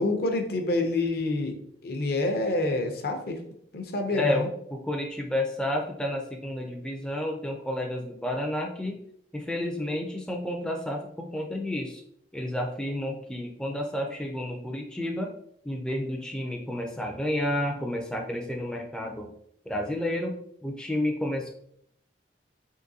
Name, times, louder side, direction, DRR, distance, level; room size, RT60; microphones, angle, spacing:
voice 1, 0.0-3.4 3.7-4.5, left 2 dB, 60° left, 4 dB, 0.5 m, -27 dB
voice 2, 4.1-4.5 4.7-9.0 9.3-12.0 12.3-15.3 15.6-19.3 19.7-20.3 20.6-21.5, left 1 dB, 5° left, 1 dB, 0.3 m, -30 dB
3.7 x 2.9 x 2.6 m, 0.68 s
head